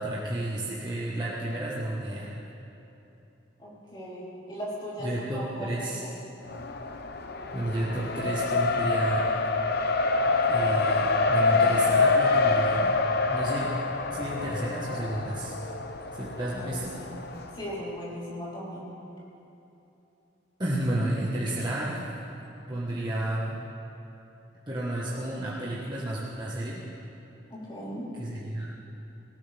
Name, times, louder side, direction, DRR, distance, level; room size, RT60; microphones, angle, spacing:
voice 1, 0.0-2.4 5.0-6.0 7.5-9.3 10.5-13.0 13.3-13.7 14.1-15.5 16.2-16.9 20.6-22.0 22.7-23.6 24.7-26.9 28.2-28.7, right 1 dB, 25° right, -7 dB, 1.4 m, -31 dB
voice 2, 3.6-5.1 5.3-6.1 16.4-17.2 17.5-18.9 27.5-28.1, equal, 25° left, -7 dB, 3.9 m, -38 dB
Race car auto racing, 6.5-17.5, left 3 dB, 55° left, 0.8 m, -26 dB
18.5 x 18.0 x 3.5 m, 2.9 s
head